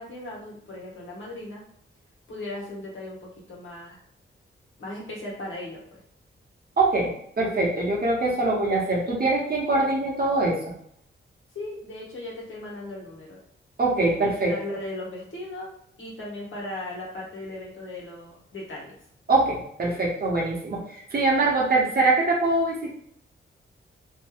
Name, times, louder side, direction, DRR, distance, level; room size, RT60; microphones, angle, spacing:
voice 1, 0.0-1.6 2.3-4.0 4.8-6.0 11.5-13.4 14.1-15.7 16.0-18.9, left 1 dB, 75° left, -4 dB, 1.1 m, -37 dB
voice 2, 6.8-10.6 13.8-14.5 19.3-22.9, right 2 dB, 45° right, -3 dB, 0.9 m, -23 dB
2.7 x 2.2 x 3.4 m, 0.69 s
wide cardioid pair, 105°, 21 cm